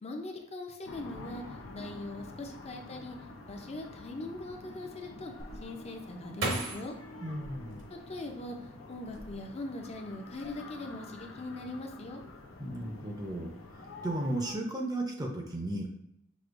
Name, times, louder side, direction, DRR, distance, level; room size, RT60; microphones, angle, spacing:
voice 1, 0.0-1.4 1.7-3.2 3.5-5.3 5.6-6.9 7.9-8.6 8.9-12.2, left 2 dB, 35° left, 4 dB, 0.5 m, -41 dB
sound 1, 0.9-14.5, left 2 dB, 80° left, 0.6 m, -47 dB
sound 2, 5.4-8.5 9.0-9.8 10.1-10.5, right 2 dB, 65° right, 1.0 m, -38 dB
voice 2, 7.2-7.8 12.6-15.9, right 1 dB, 20° right, 0 dB, 0.6 m, -35 dB
6.1 x 2.7 x 2.5 m, 0.80 s
head